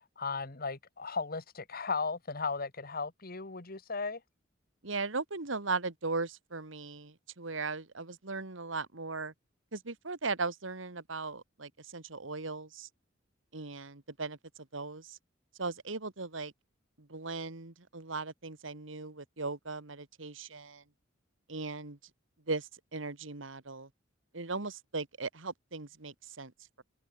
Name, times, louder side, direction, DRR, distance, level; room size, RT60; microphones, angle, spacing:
voice 1, 0.2-4.2, left 4 dB, 50° left, 1.8 m, -36 dB
voice 2, 4.8-9.3 9.7-12.9 13.5-15.2 15.6-16.5 17.0-20.8 21.5-22.0 22.5-23.9 24.3-26.5, right 3 dB, 85° right, 2.1 m, -38 dB
head